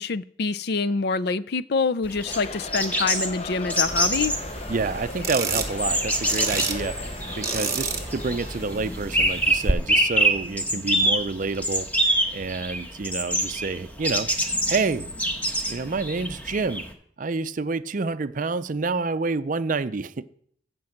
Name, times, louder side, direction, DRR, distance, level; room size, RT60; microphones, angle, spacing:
voice 1, 0.0-4.3, left 4 dB, 55° left, 13 dB, 0.5 m, -26 dB
sound 1, 2.0-16.9, right 1 dB, 10° left, 1.3 m, -26 dB
sound 2, 2.2-9.1, left 3 dB, 35° left, 0.8 m, -38 dB
sound 3, 3.9-9.7, right 3 dB, 15° right, 1.1 m, -31 dB
voice 2, 4.7-7.0 7.4-14.3 14.7-15.1 15.7-16.9 17.2-20.3, right 4 dB, 45° right, 13 dB, 0.5 m, -28 dB
15.5 x 5.4 x 7.2 m, 0.62 s
head